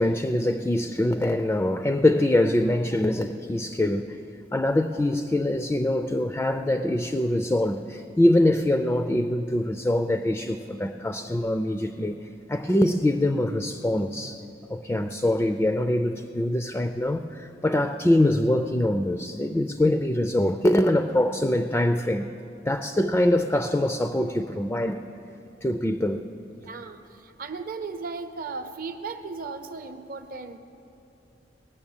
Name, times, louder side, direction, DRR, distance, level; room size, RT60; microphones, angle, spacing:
voice 1, 0.0-4.2 4.5-12.2 12.5-14.4 14.7-22.3 22.7-25.0 25.6-26.2, left 1 dB, 10° left, 8 dB, 0.3 m, -24 dB
voice 2, 26.6-30.6, right 4 dB, 55° right, 8 dB, 0.7 m, -36 dB
18.5 x 6.8 x 7.2 m, 2.7 s
head